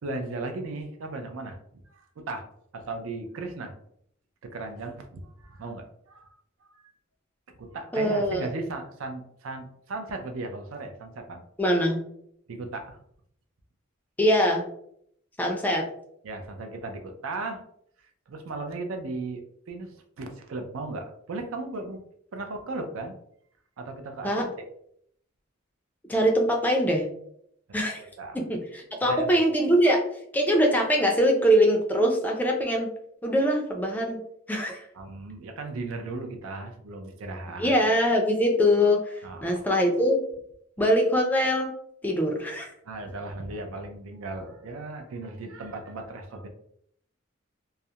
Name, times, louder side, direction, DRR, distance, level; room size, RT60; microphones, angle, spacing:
voice 1, 0.0-2.5 2.7-3.7 4.4-6.3 6.6-6.9 7.6-11.4 12.5-13.0 16.2-17.6 18.3-22.0 22.3-23.2 23.8-24.5 28.0-28.4 29.0-29.3 34.9-37.7 39.2-39.8 42.8-46.5, right 2 dB, 80° right, 5 dB, 0.5 m, -36 dB
voice 2, 7.9-8.5 11.6-12.0 14.2-14.6 15.4-15.8 24.2-24.5 26.1-27.1 27.7-28.0 28.3-30.0 30.3-32.9 33.2-34.2 34.5-34.9 37.6-40.2 40.8-41.7 42.0-42.7, equal, 10° left, 1 dB, 0.3 m, -23 dB
2.3 x 2.0 x 2.7 m, 0.70 s
head